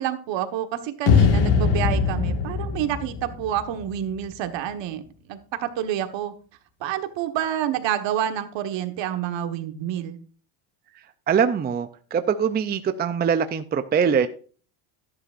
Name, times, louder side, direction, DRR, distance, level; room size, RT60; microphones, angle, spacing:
voice 1, 0.0-5.0 5.3-6.3 6.8-10.2, right 11 dB, 65° right, 8 dB, 1.5 m, -28 dB
sound 1, 1.1-4.3, left 6 dB, 65° left, 1.9 m, -21 dB
voice 2, 11.3-14.3, right 7 dB, 20° right, 10 dB, 0.5 m, -23 dB
12.5 x 11.0 x 2.5 m, 0.40 s
cardioid pair, 125°, 48 cm